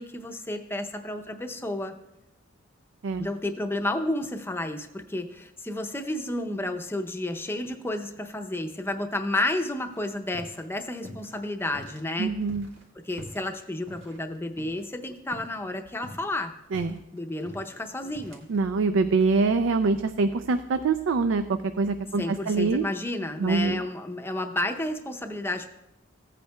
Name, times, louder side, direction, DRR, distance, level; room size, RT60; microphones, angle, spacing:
voice 1, 0.0-2.0 3.2-12.3 13.0-16.5 17.1-18.5 22.2-25.7, left 1 dB, 10° left, 5 dB, 0.6 m, -31 dB
sound 1, 9.9-10.7 11.0-12.0 12.4-15.0 15.3-15.6 15.9-18.6, left 1 dB, 65° right, 1.7 m, -45 dB
voice 2, 12.2-12.7 16.7-17.0 18.5-22.8 23.4-23.8, right 4 dB, 85° right, 10 dB, 0.4 m, -24 dB
15.5 x 8.4 x 2.2 m, 0.88 s
head